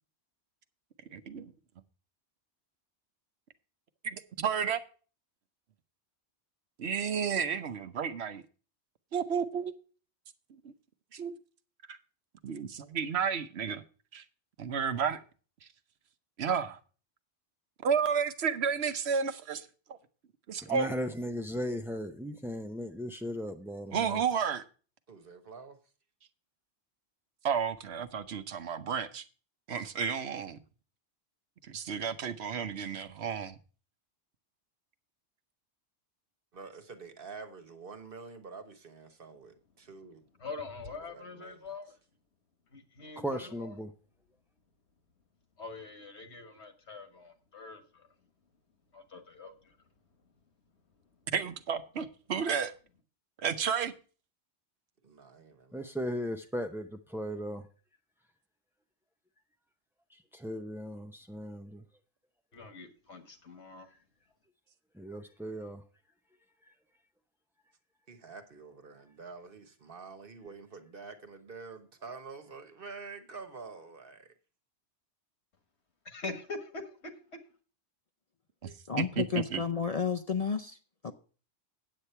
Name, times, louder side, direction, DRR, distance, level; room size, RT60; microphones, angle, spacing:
voice 1, 1.1-1.5 4.0-4.8 6.8-8.4 9.1-9.7 11.1-11.3 11.9-12.0 12.4-13.8 14.1-14.2 14.6-15.2 16.4-16.8 17.8-20.0 20.5-20.9 23.9-24.6 27.4-29.2 29.7-30.6 31.6-33.5 51.3-52.7 53.4-53.9 78.6-79.6, right 6 dB, 70° right, 1.1 m, -32 dB
voice 2, 20.6-24.2 43.2-43.9 55.7-57.7 60.1-61.8 64.9-65.8 66.6-66.7, equal, 5° right, 0.3 m, -37 dB
voice 3, 25.1-25.8 36.5-40.3 41.0-41.7 55.0-56.0 68.1-74.3, right 4 dB, 55° right, 1.4 m, -47 dB
voice 4, 40.4-42.0 42.7-43.7 45.6-48.1 48.9-49.5 62.5-63.9 76.1-77.1, left 3 dB, 70° left, 1.8 m, -43 dB
voice 5, 78.6-80.8 81.0-81.1, left 6 dB, 40° left, 0.6 m, -32 dB
8.8 x 8.3 x 4.4 m
omnidirectional pair, 1.2 m